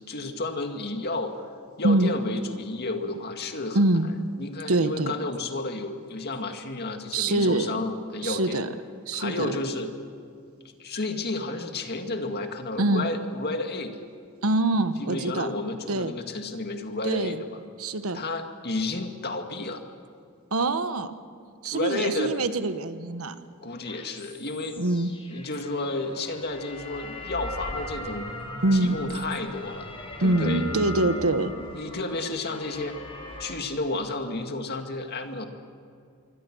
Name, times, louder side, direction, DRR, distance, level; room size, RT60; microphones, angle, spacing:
voice 1, 0.0-1.5 1.8-3.8 4.4-8.6 9.1-9.9 10.8-13.9 15.0-17.5 18.1-19.8 21.7-22.3 23.6-24.8 25.3-28.3 28.7-29.9 30.2-31.1 31.6-32.9 33.4-35.5, left 2 dB, 50° left, 5 dB, 2.1 m, -31 dB
voice 2, 3.7-4.1 4.7-5.1 7.1-7.7 8.2-8.7 9.1-9.5 12.8-13.0 14.4-15.5 15.9-16.1 17.0-17.4 17.8-18.2 20.5-21.1 21.6-23.4 24.7-25.1 28.6-29.0 30.2-31.5, right 2 dB, 80° right, 10 dB, 1.2 m, -24 dB
sound 1, 23.9-33.5, left 1 dB, 25° left, 4.1 m, -39 dB
26.0 x 24.0 x 6.2 m, 2.3 s
head